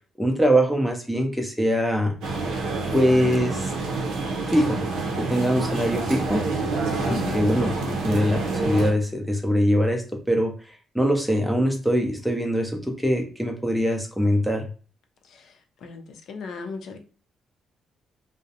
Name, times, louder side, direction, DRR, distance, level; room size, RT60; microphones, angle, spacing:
voice 1, 0.2-2.1 2.9-3.7 4.5-4.8 5.1-6.4 7.1-7.7 8.0-14.7, equal, ahead, 0.5 m, -23 dB
sound 1, 2.2-8.9, right 3 dB, 85° right, 0.5 m, -27 dB
voice 2, 7.1-8.0 15.8-16.0 16.3-17.0, left 4 dB, 70° left, 0.5 m, -35 dB
2.4 x 2.0 x 2.7 m
cardioid pair, 90°, 0 cm